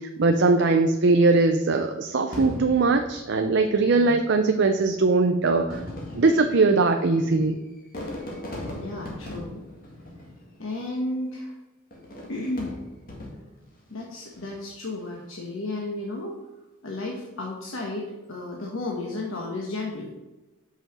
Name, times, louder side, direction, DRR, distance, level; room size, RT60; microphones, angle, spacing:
voice 1, 0.2-5.8 6.1-7.6, right 3 dB, 60° right, 6 dB, 0.5 m, -20 dB
Fireworks, 2.3-3.9 4.8-4.9 5.6-10.8 11.9-13.7 14.2-14.7, left 1 dB, 45° left, 1.9 m, -39 dB
voice 2, 8.7-9.6 10.6-11.5 12.3-12.8 13.9-16.4 16.8-20.1, left 2 dB, 75° left, -1 dB, 1.1 m, -33 dB
5.7 x 5.5 x 6.1 m, 1.1 s
head